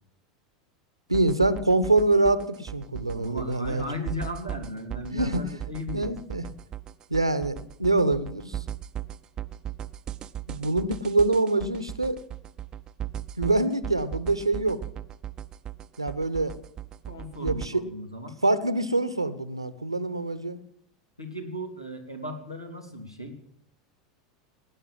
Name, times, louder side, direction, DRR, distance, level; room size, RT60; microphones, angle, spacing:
sound 1, 1.1-17.7, right 10 dB, 30° right, 0.6 m, -37 dB
voice 1, 1.1-3.8 5.1-5.4 5.9-6.4 7.1-8.6 10.5-12.2 13.4-14.8 16.0-16.5 17.4-17.8 18.4-20.6, right 2 dB, 85° right, 15 dB, 1.0 m, -25 dB
voice 2, 3.1-6.4 16.4-16.6 17.1-18.4 21.2-23.4, left 1 dB, 90° left, 4 dB, 2.9 m, -36 dB
18.5 x 10.0 x 7.4 m, 0.71 s
figure-of-eight pair, 80°, 3 cm